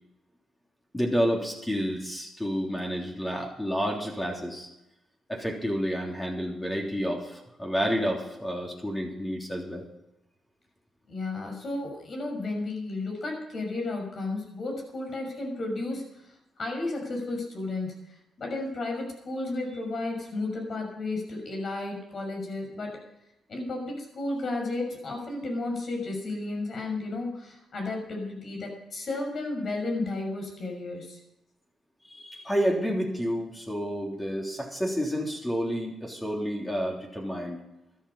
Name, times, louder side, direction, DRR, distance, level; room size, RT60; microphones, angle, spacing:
voice 1, 0.9-4.7 5.3-9.8 32.1-37.6, equal, 10° left, -1 dB, 3.4 m, -30 dB
voice 2, 11.1-23.0 23.5-31.2, left 2 dB, 50° left, 2 dB, 6.1 m, -33 dB
13.0 x 12.5 x 5.5 m, 0.88 s
cardioid pair, 90°, 0 cm